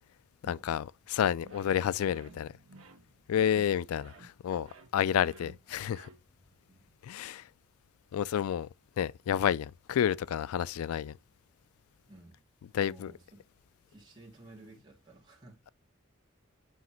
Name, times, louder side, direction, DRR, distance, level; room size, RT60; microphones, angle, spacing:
voice 1, 0.5-2.5 3.3-4.7 4.9-6.1 7.0-7.5 8.1-8.7 9.0-11.2 12.7-13.1, left 9 dB, 90° left, 0.3 m, -30 dB
sound 1, 1.4-6.5, right 3 dB, 85° right, 1.3 m, -56 dB
voice 2, 12.1-12.4 12.7-13.4 13.9-15.7, right 2 dB, 20° right, 2.5 m, -54 dB
8.0 x 5.0 x 3.0 m
head